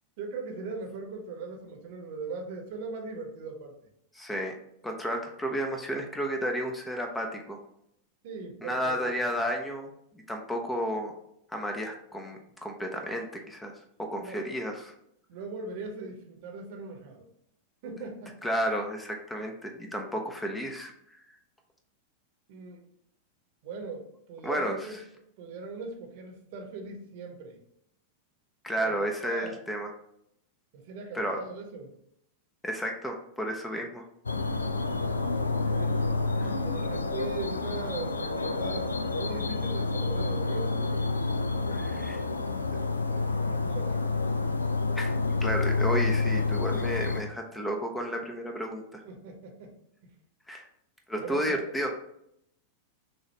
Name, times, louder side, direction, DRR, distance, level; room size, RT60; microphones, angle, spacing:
voice 1, 0.2-3.7 8.2-9.0 14.2-14.4 15.3-17.3 17.8-18.3 20.1-20.2 22.5-22.8 23.6-24.9 25.4-27.6 28.8-28.9 29.2-29.6 30.7-31.9 35.7-36.1 36.6-40.7 41.7-42.3 43.1-44.1 49.0-49.7 50.0-50.1 51.2-51.6, right 4 dB, 50° right, 2 dB, 0.9 m, -40 dB
voice 2, 4.1-4.5 4.8-7.6 8.6-9.9 10.3-11.1 11.5-13.8 14.1-14.9 18.4-21.2 24.4-25.0 28.6-29.9 31.1-31.4 32.6-34.0 36.4-36.5 41.7-42.2 44.9-45.1 45.4-49.0 50.5-50.7 51.1-51.9, equal, 10° left, 3 dB, 0.6 m, -32 dB
sound 1, 34.3-47.2, left 3 dB, 75° left, 0.3 m, -28 dB
6.2 x 2.4 x 3.1 m, 0.74 s
figure-of-eight pair, 90°, 0 cm